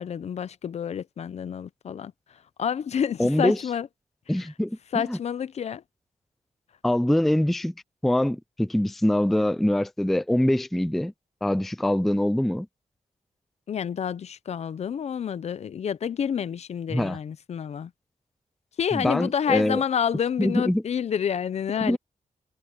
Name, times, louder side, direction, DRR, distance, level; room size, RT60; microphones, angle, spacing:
voice 1, 0.0-3.9 4.4-4.5 4.9-5.8 13.7-17.9 18.8-22.0, left 8 dB, 55° left, 0.5 m, -29 dB
voice 2, 3.2-3.6 4.3-4.8 5.1-5.2 6.8-7.7 8.0-11.1 11.4-12.7 16.9-17.2 18.9-19.8 20.4-20.8 21.8-22.0, left 1 dB, ahead, 0.3 m, -23 dB
wide cardioid pair, 170°, 13 cm